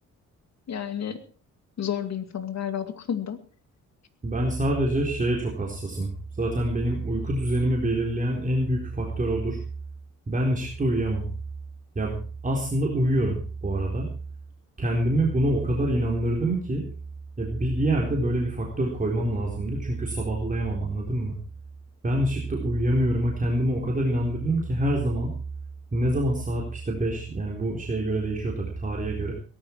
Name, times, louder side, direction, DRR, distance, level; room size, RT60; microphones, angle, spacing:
voice 1, 0.7-1.2 1.8-3.4, left 9 dB, 60° left, 9 dB, 2.3 m, -31 dB
voice 2, 4.2-6.1 6.4-9.6 10.3-11.3 12.0-14.1 14.8-16.8 17.4-21.4 22.0-25.3 25.9-29.3, right 1 dB, 25° right, -2 dB, 4.1 m, -26 dB
17.5 x 13.5 x 4.7 m, 0.39 s
cardioid pair, 110°, 31 cm